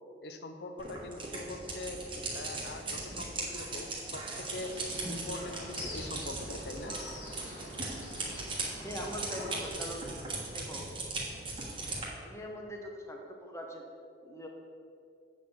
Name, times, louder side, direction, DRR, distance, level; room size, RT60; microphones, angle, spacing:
voice 1, 0.2-2.0 2.3-4.7 5.1-6.9, left 2 dB, 60° left, 6 dB, 0.7 m, -42 dB
sound 1, 0.8-12.1, right 2 dB, 30° right, 1.4 m, -39 dB
sound 2, 4.5-9.7, left 1 dB, 40° left, 1.7 m, -45 dB
voice 2, 8.8-10.1 10.5-10.9 12.2-13.9 14.2-14.5, equal, 15° left, 1 dB, 0.9 m, -41 dB
8.3 x 4.2 x 7.2 m, 2.5 s
head